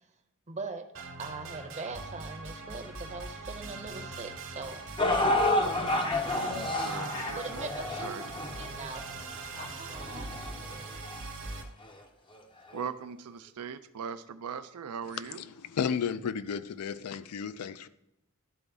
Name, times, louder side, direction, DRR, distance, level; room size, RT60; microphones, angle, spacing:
voice 1, 0.5-0.9 1.2-4.8 7.3-9.0 9.5-10.4, right 3 dB, 30° right, 0.7 m, -41 dB
sound 1, 0.9-11.6, right 3 dB, 60° right, 1.1 m, -42 dB
sound 2, 5.0-11.2 11.9-12.0 12.7-12.8, left 2 dB, 20° left, 0.5 m, -30 dB
voice 2, 6.5-7.7 8.0-8.3 12.7-15.4, right 7 dB, 85° right, 0.5 m, -40 dB
voice 3, 15.2-17.9, left 7 dB, 80° left, 0.4 m, -33 dB
12.0 x 4.0 x 3.5 m
head